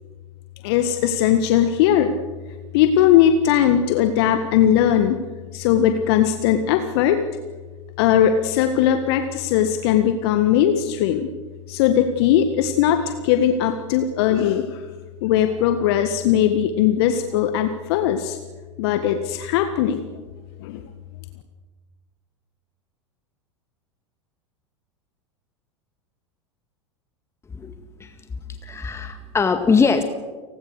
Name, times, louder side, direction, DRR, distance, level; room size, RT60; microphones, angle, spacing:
voice 1, 0.6-2.1 2.7-5.2 5.5-7.2 8.0-11.3 11.7-14.9 15.2-18.4 18.8-20.0 20.6-20.8, left 10 dB, 55° left, 8 dB, 1.6 m, -19 dB
voice 2, 28.6-30.0, left 5 dB, 15° left, 8 dB, 1.9 m, -21 dB
30.0 x 20.5 x 6.6 m, 1.4 s
figure-of-eight pair, 85°, 16 cm